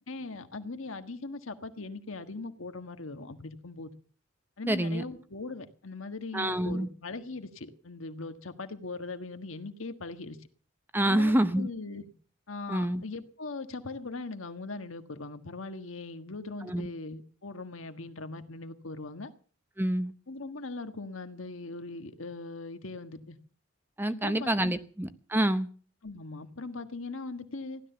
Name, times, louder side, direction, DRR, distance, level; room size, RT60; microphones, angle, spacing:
voice 1, 0.1-3.9 4.6-10.4 11.1-12.1 12.5-19.3 20.3-23.4 24.1-24.7 26.0-27.8, left 3 dB, 75° left, 1.5 m, -40 dB
voice 2, 4.7-5.0 6.3-6.9 10.9-11.7 12.7-13.0 16.6-16.9 19.8-20.1 24.0-25.7, right 1 dB, 10° right, 0.7 m, -27 dB
15.5 x 12.0 x 6.9 m
head